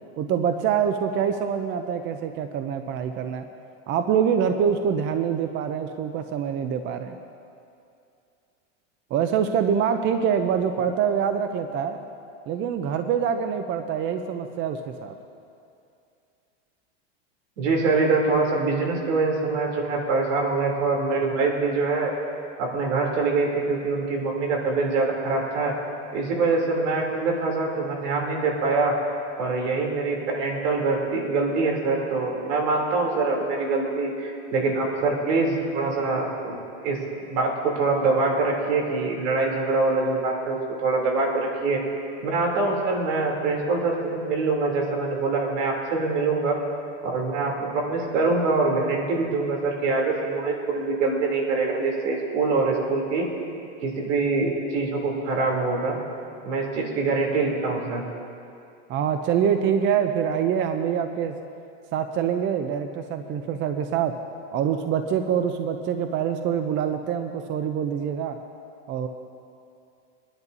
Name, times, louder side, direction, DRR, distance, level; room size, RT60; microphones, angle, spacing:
voice 1, 0.2-3.4 3.9-7.2 9.1-12.0 12.5-15.1 58.9-61.4 61.9-64.1 64.5-68.4 68.9-69.1, right 8 dB, 35° right, 7 dB, 0.6 m, -25 dB
voice 2, 17.6-22.1 22.6-25.7 26.1-28.9 29.4-36.6 36.8-41.8 42.2-46.6 47.0-53.3 53.8-56.0 56.4-58.0, right 3 dB, 75° right, 0 dB, 3.3 m, -24 dB
24.0 x 11.0 x 2.7 m, 2.5 s
supercardioid pair, 135°, 36 cm